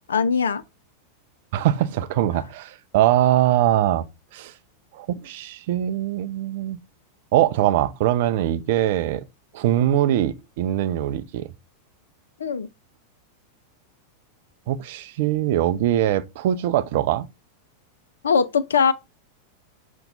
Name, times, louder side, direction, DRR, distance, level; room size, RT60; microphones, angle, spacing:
voice 1, 0.1-0.6 12.4-12.7 18.2-18.9, left 6 dB, 70° left, 0.3 m, -20 dB
voice 2, 1.5-4.0 4.3-4.5 4.9-6.8 7.3-9.2 9.5-11.5 14.7-17.3, right 12 dB, 50° right, 0.4 m, -22 dB
5.3 x 2.1 x 4.0 m
figure-of-eight pair, 90°, 0 cm